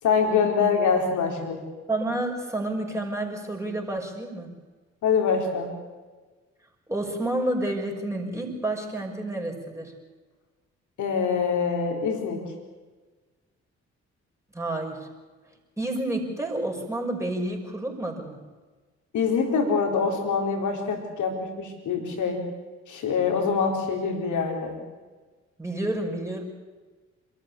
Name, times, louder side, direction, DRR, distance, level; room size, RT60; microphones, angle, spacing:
voice 1, 0.0-1.6 5.0-5.7 11.0-12.5 19.1-22.4 22.9-24.8, left 5 dB, 55° left, 3 dB, 4.3 m, -25 dB
voice 2, 1.9-4.5 6.9-9.9 14.5-15.1 15.8-18.4 25.6-26.4, right 1 dB, 10° right, 1 dB, 6.1 m, -29 dB
27.0 x 14.0 x 8.5 m, 1.3 s
figure-of-eight pair, 40°, 35 cm